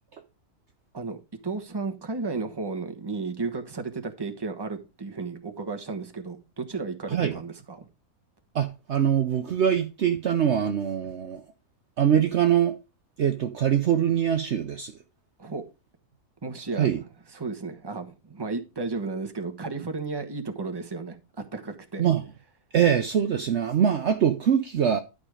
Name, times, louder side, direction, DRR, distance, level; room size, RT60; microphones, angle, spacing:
voice 1, 0.9-7.9 15.4-15.6 16.4-16.9 17.3-22.0, right 3 dB, 20° right, 1.1 m, -33 dB
voice 2, 7.1-7.4 8.5-11.4 12.0-12.7 13.2-14.9 16.7-17.0 22.0-22.2 22.7-25.0, right 9 dB, 55° right, 0.9 m, -23 dB
11.5 x 5.1 x 4.9 m
omnidirectional pair, 1.6 m